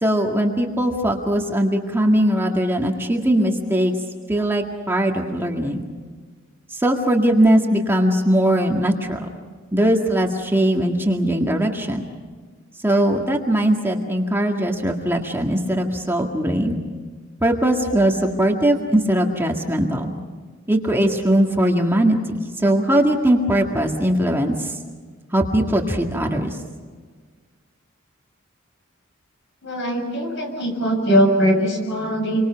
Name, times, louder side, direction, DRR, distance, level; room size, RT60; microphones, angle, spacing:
voice 1, 0.0-3.9 4.3-5.8 6.7-9.3 9.7-12.0 12.8-16.8 17.4-20.1 20.7-22.2 22.6-24.8 25.3-26.5, right 1 dB, 10° right, 1 dB, 2.0 m, -20 dB
voice 2, 29.6-32.5, equal, 60° left, 3 dB, 6.9 m, -20 dB
29.0 x 24.5 x 5.9 m, 1.5 s
head